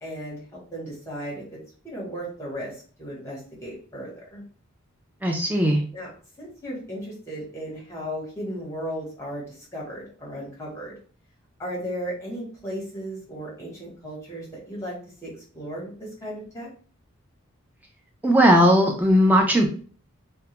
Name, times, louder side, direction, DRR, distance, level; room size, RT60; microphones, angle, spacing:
voice 1, 0.0-1.6 1.8-4.4 5.9-6.1 6.4-10.9 11.6-16.7, equal, 15° left, -4 dB, 0.9 m, -35 dB
voice 2, 5.2-5.8 18.2-19.7, equal, 10° right, 1 dB, 0.3 m, -18 dB
2.2 x 2.1 x 2.9 m, 0.42 s
head